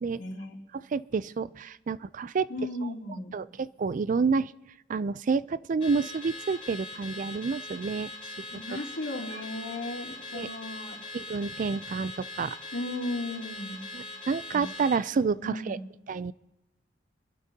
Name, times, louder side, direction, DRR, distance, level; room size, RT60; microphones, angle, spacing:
voice 1, 0.2-0.6 2.5-3.4 8.5-11.0 12.7-13.8 14.5-14.6 15.4-15.8, left 2 dB, 85° left, -1 dB, 3.0 m, -35 dB
voice 2, 0.7-2.5 2.8-2.9 3.3-4.5 4.9-8.1 9.3-9.4 10.3-10.5 11.1-12.6 13.9-15.8 16.1-16.3, right 5 dB, 45° right, 17 dB, 0.4 m, -29 dB
Car / Alarm, 5.8-15.1, left 2 dB, 35° left, 4.0 m, -41 dB
24.5 x 12.5 x 2.8 m, 0.97 s
head